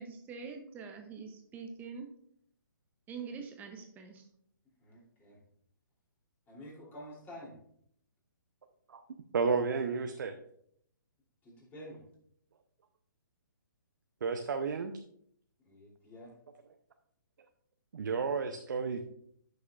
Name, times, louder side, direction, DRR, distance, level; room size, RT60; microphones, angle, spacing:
voice 1, 0.0-2.1 3.1-4.3, right 5 dB, 15° right, 5 dB, 0.7 m, -44 dB
voice 2, 4.8-5.4 6.5-7.5 11.4-12.0 15.6-16.3, equal, 15° left, -4 dB, 3.1 m, -49 dB
voice 3, 9.3-10.3 14.2-14.9 17.9-19.0, right 5 dB, 65° right, 6 dB, 0.7 m, -31 dB
11.5 x 6.3 x 2.5 m, 0.68 s
figure-of-eight pair, 135°, 11 cm